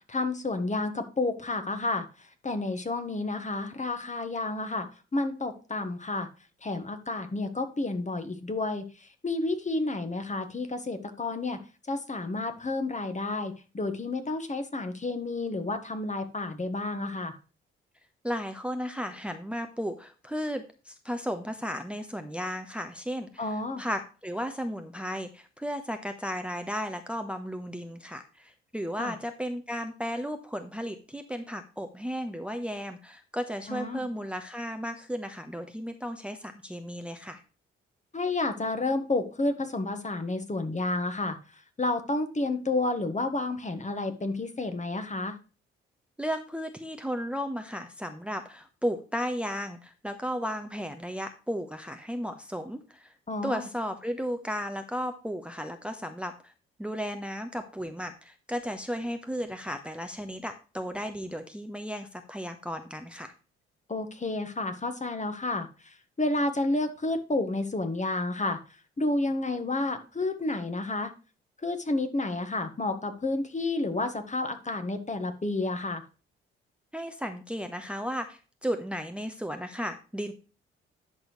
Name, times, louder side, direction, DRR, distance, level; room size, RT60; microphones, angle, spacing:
voice 1, 0.1-2.0 2.4-4.9 5.1-6.3 6.6-8.8 9.2-11.6 11.9-17.3 23.4-23.8 29.0-29.1 33.7-34.1 38.1-41.4 41.8-45.3 53.3-53.7 63.9-65.7 66.2-68.6 69.0-71.1 71.6-76.0, left 2 dB, 25° left, 8 dB, 1.5 m, -30 dB
voice 2, 18.2-37.4 46.2-53.1 53.4-56.5 56.8-63.3 76.9-80.3, equal, 5° right, 6 dB, 1.0 m, -34 dB
10.5 x 6.2 x 3.2 m, 0.35 s
hypercardioid pair, 45°, 30 cm